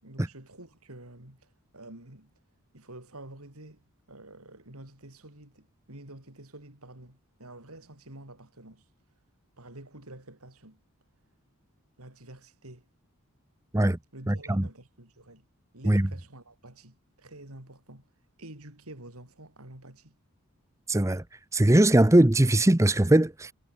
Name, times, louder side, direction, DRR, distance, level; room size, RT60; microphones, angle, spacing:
voice 1, 0.0-2.3 2.7-8.8 9.6-10.8 12.0-12.9 14.1-15.4 15.7-18.0 18.4-20.1, right 1 dB, 80° right, 5.2 m, -48 dB
voice 2, 14.3-14.7 15.8-16.1 20.9-21.2 21.5-23.5, right 1 dB, 15° right, 0.7 m, -20 dB
head